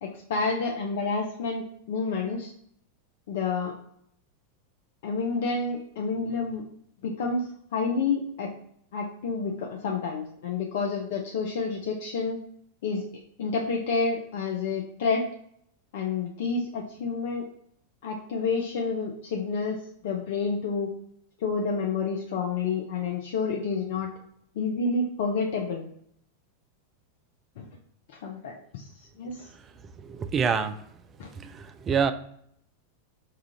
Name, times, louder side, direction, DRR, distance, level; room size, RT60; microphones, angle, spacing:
voice 1, 0.0-2.5 3.3-3.8 5.0-6.6 7.0-8.5 8.9-12.4 12.8-13.0 13.4-15.3 15.9-17.5 18.0-20.9 21.4-24.1 24.6-25.8 27.6-27.7 28.1-29.5 31.2-31.3, left 4 dB, 55° left, 1 dB, 0.5 m, -29 dB
voice 2, 30.0-30.8 31.3-32.1, right 6 dB, 25° right, 9 dB, 0.4 m, -27 dB
4.8 x 2.4 x 2.8 m, 0.68 s
figure-of-eight pair, 90°, 0 cm